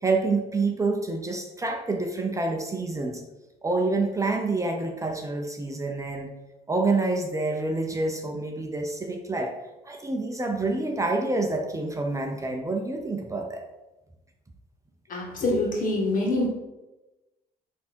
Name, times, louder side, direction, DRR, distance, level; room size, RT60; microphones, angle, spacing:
voice 1, 0.0-3.2 3.6-6.3 6.7-9.5 9.8-13.6, right 3 dB, 20° right, 3 dB, 0.8 m, -27 dB
voice 2, 15.1-16.5, left 2 dB, 50° left, -1 dB, 2.1 m, -25 dB
8.2 x 3.7 x 4.4 m, 1.0 s
cardioid pair, 110°, 17 cm